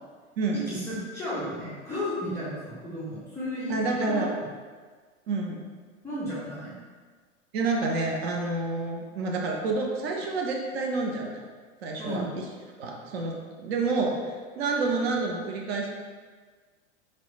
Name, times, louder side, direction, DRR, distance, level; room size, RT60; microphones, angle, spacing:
voice 1, 0.5-4.3 6.0-6.8 12.0-12.3, equal, 5° left, -11 dB, 0.3 m, -33 dB
voice 2, 3.7-4.4 5.3-5.6 7.5-11.4 11.8-12.2 12.8-14.2 14.6-15.9, right 3 dB, 55° right, 1 dB, 0.5 m, -28 dB
2.9 x 2.1 x 2.2 m, 1.5 s
figure-of-eight pair, 95°, 39 cm